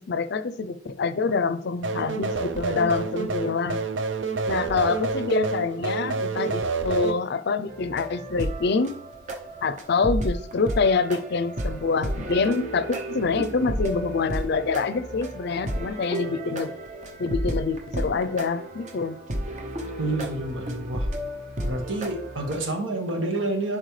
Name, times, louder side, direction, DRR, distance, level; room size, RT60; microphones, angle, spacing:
voice 1, 0.1-3.8 4.5-9.0 9.6-16.7 17.2-19.2, left 4 dB, 60° left, 13 dB, 0.5 m, -26 dB
sound 1, 1.8-7.1, right 4 dB, 70° right, 0.6 m, -28 dB
sound 2, 7.7-22.6, right 1 dB, 40° right, 0.8 m, -32 dB
voice 2, 20.0-21.1 21.6-23.8, right 2 dB, 85° right, 2 dB, 1.6 m, -28 dB
10.5 x 4.5 x 3.2 m, 0.65 s
head